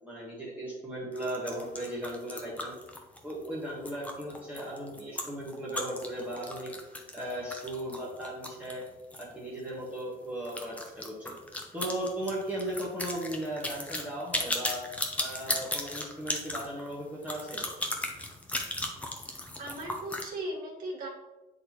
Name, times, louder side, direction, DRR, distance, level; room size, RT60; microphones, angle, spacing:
voice 1, 0.0-2.7 3.2-6.7 7.1-8.8 9.1-11.3 11.7-14.8 15.2-17.7, right 1 dB, 10° right, -6 dB, 1.3 m, -37 dB
sound 1, 1.1-9.3 9.6-9.7 10.0-10.1 10.4-20.3, left 1 dB, 10° left, 0.7 m, -36 dB
voice 2, 19.6-21.1, right 1 dB, 60° right, -2 dB, 1.8 m, -37 dB
8.8 x 4.0 x 3.0 m, 1.1 s
cardioid pair, 160°, 17 cm